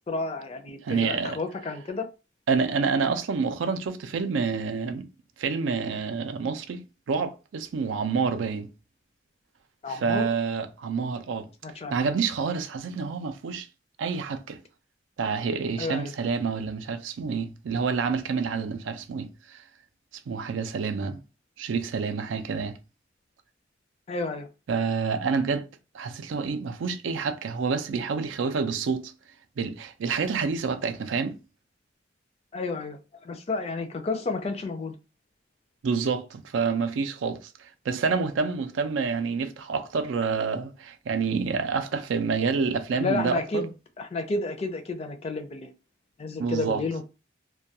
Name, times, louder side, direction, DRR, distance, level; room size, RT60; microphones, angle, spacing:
voice 1, 0.1-2.1 9.8-10.3 11.6-12.0 15.8-16.1 24.1-24.5 32.5-34.9 42.9-43.7 44.0-45.7 46.2-47.0, left 3 dB, 35° left, 0.4 m, -31 dB
voice 2, 0.8-1.4 2.5-5.1 5.4-6.8 7.1-8.7 9.9-11.5 11.9-13.7 14.0-14.6 15.2-19.6 20.3-21.2 21.6-22.8 24.7-25.7 25.9-29.1 29.6-31.4 35.8-43.6 46.4-46.8, right 5 dB, 90° right, 0.4 m, -28 dB
2.2 x 2.2 x 2.7 m
head